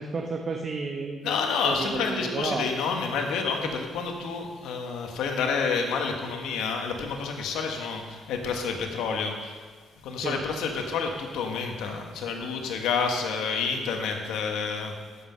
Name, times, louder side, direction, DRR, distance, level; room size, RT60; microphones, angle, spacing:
voice 1, 0.0-1.3 1.6-2.7 10.2-10.4, right 4 dB, 45° right, 1 dB, 1.0 m, -31 dB
voice 2, 1.2-9.6 10.0-14.9, left 5 dB, 90° left, 3 dB, 1.4 m, -29 dB
15.0 x 5.8 x 5.7 m, 1.5 s
cardioid pair, 90°, 0 cm